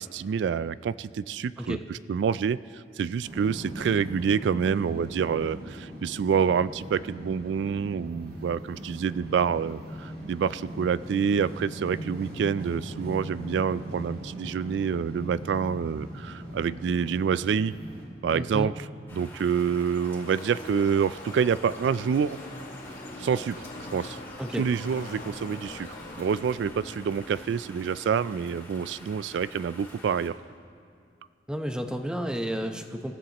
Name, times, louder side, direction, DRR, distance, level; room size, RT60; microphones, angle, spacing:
voice 1, 0.0-17.7 18.2-18.9 19.1-22.4 23.2-23.6 23.9-24.2 24.5-25.9 26.2-30.4, right 7 dB, 85° right, 16 dB, 0.3 m, -27 dB
sound 1, 3.2-18.0, equal, 65° right, 3.6 m, -40 dB
voice 2, 18.3-18.7 24.4-24.7 31.5-33.1, equal, 5° right, 5 dB, 0.8 m, -31 dB
Car passing by / Race car auto racing, 19.1-29.1, left 1 dB, 45° left, 1.6 m, -44 dB
sound 2, 19.1-30.3, left 1 dB, 10° left, 2.6 m, -47 dB
26.5 x 14.5 x 2.9 m, 2.5 s
head